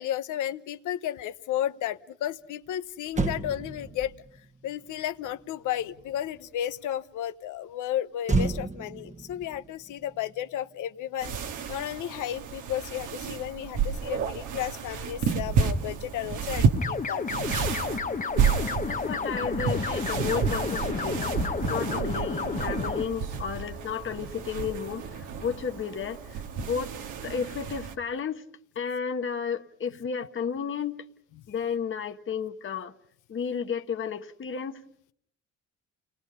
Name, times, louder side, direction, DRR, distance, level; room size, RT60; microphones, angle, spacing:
voice 1, 0.0-4.1 4.6-11.3 11.7-17.2, left 11 dB, 85° left, 1.0 m, -33 dB
Motor vehicle (road), 2.7-2.8 3.1-6.6 8.2-10.8 11.1-11.4, right 3 dB, 25° right, 1.2 m, -33 dB
sound 1, 11.2-27.9, right 6 dB, 85° right, 1.9 m, -31 dB
sound 2, 16.8-23.0, left 5 dB, 25° left, 0.9 m, -31 dB
voice 2, 18.9-26.9 27.2-28.4 28.7-31.1 31.5-33.0 33.3-34.8, left 6 dB, 40° left, 1.2 m, -33 dB
30.0 x 20.0 x 5.6 m
cardioid pair, 90°, 30 cm